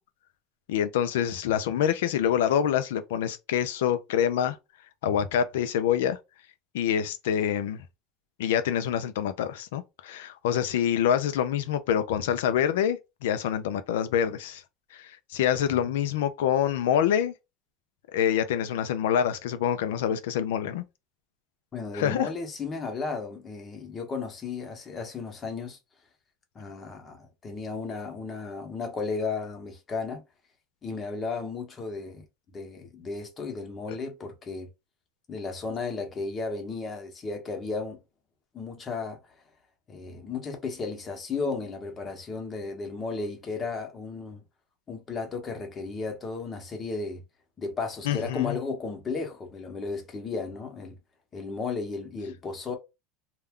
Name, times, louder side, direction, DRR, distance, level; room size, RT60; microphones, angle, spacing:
voice 1, 0.7-4.6 5.0-6.2 6.7-7.8 8.4-14.6 14.9-17.3 18.1-20.8 21.9-22.3 48.1-48.6, left 9 dB, 85° left, 0.4 m, -26 dB
voice 2, 21.7-25.8 26.5-30.2 30.8-32.2 32.5-34.7 35.3-38.0 38.5-39.2 39.9-44.4 44.9-47.2 47.6-51.0 51.3-52.7, left 4 dB, 30° left, 0.9 m, -34 dB
2.3 x 2.0 x 3.5 m
supercardioid pair, 110°, 0 cm